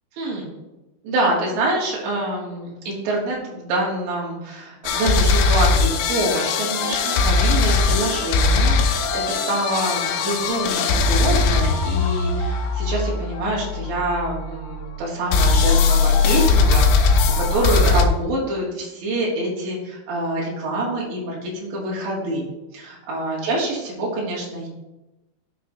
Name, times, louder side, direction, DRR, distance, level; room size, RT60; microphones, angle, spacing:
voice 1, 0.1-0.5 1.0-22.5 22.7-24.7, right 2 dB, 70° right, -4 dB, 4.2 m, -26 dB
sound 1, 4.9-14.8 15.3-18.1, left 4 dB, 90° left, 3.5 m, -20 dB
12.0 x 6.0 x 2.6 m, 1.0 s
omnidirectional pair, 5.7 m